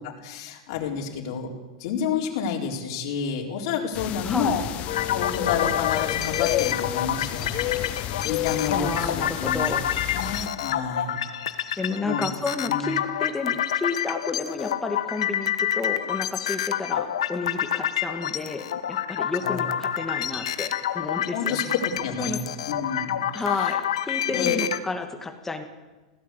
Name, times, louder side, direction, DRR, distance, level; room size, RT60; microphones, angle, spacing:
voice 1, 0.2-1.5 1.8-4.6 5.1-7.5 8.2-9.6 10.1-11.2 12.0-12.3 12.7-12.9 19.4-19.6 21.3-22.4 22.7-23.8 24.3-24.6, left 6 dB, 65° left, -1 dB, 4.2 m, -29 dB
sound 1, 3.9-10.5, left 13 dB, 45° left, 1.1 m, -30 dB
voice 2, 4.2-4.6 8.7-9.9 11.8-21.7 22.2-22.4 23.3-25.6, left 3 dB, 10° left, 6 dB, 2.3 m, -31 dB
sound 2, 4.9-24.8, left 10 dB, 90° left, 1.4 m, -28 dB
21.5 x 17.0 x 8.4 m, 1.2 s
supercardioid pair, 125°, 3 cm